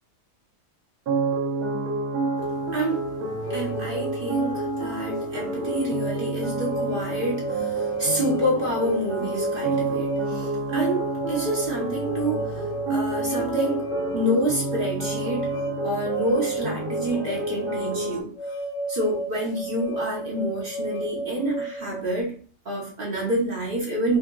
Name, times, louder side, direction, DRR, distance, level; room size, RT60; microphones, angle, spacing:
sound 1, 1.1-18.2, right 3 dB, 70° right, 1.3 m, -29 dB
voice 1, 2.7-3.1 3.5-13.9 14.1-15.5 15.8-18.3 18.9-22.3 22.6-24.2, right 1 dB, 40° right, -3 dB, 0.9 m, -28 dB
sound 2, 3.4-22.2, right 1 dB, 80° left, 0.5 m, -34 dB
4.7 x 2.5 x 2.2 m, 0.44 s
omnidirectional pair, 1.7 m